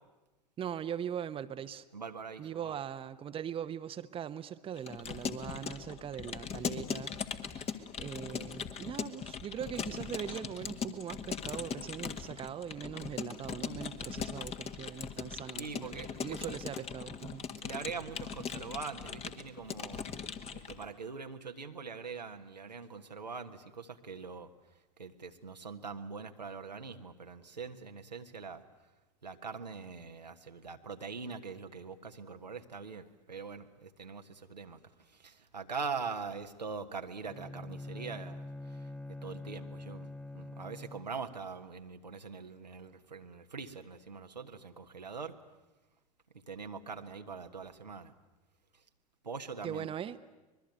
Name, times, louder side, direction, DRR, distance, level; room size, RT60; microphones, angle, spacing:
voice 1, 0.6-1.8 2.4-7.2 7.5-17.4 49.6-50.2, right 9 dB, 25° right, 11 dB, 1.0 m, -41 dB
voice 2, 1.9-2.8 15.5-16.6 17.6-20.0 20.5-24.5 25.0-28.6 29.2-34.8 35.1-38.4 39.2-45.3 46.5-48.1 49.2-49.9, right 5 dB, 90° right, 5 dB, 1.4 m, -43 dB
Keyboard (musical) / Computer keyboard, 4.8-20.9, left 6 dB, 30° left, 1.8 m, -40 dB
Bowed string instrument, 37.2-41.3, left 2 dB, 5° left, 0.8 m, -45 dB
24.5 x 21.0 x 9.4 m, 1.1 s
figure-of-eight pair, 85°, 21 cm